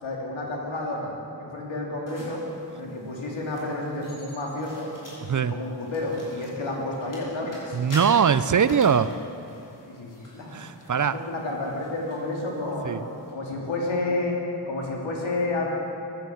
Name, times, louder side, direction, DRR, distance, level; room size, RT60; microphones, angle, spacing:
voice 1, 0.0-2.4 2.7-4.9 5.4-7.8 9.9-10.5 10.9-13.0 13.3-15.7, left 2 dB, 90° left, -2 dB, 2.9 m, -30 dB
sound 1, 2.1-13.3, left 1 dB, 45° left, 4.7 m, -47 dB
voice 2, 7.7-9.1 10.5-11.2 12.8-13.0, right 7 dB, 45° right, 14 dB, 0.6 m, -21 dB
15.0 x 10.5 x 7.8 m, 2.8 s
wide cardioid pair, 70°, 45 cm